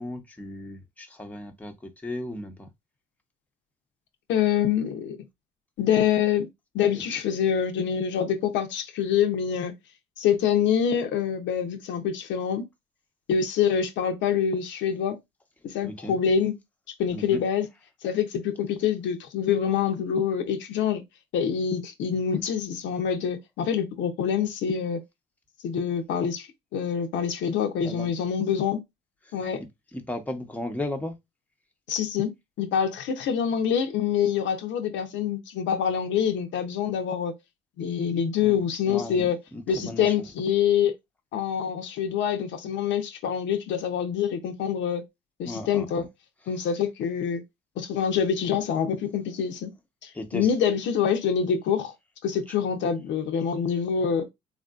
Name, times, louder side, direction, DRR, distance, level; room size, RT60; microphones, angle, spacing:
voice 1, 0.0-2.7 7.1-7.2 15.8-16.2 17.1-17.4 27.8-28.1 29.2-31.2 38.4-40.3 45.4-46.1 46.4-46.6 50.1-50.5 52.5-52.6, left 1 dB, 5° left, 0.8 m, -36 dB
voice 2, 4.3-5.2 5.8-6.5 6.7-9.7 10.2-12.7 13.3-15.2 15.6-16.5 17.0-17.7 18.0-21.0 21.3-25.0 25.6-28.8 29.3-29.6 31.9-32.3 32.6-37.3 37.8-39.4 39.7-40.9 41.3-45.0 45.4-46.0 46.5-47.4 47.8-49.7 50.0-51.9 52.2-54.3, left 8 dB, 70° left, 0.7 m, -26 dB
3.5 x 2.5 x 2.4 m
hypercardioid pair, 60°, 20 cm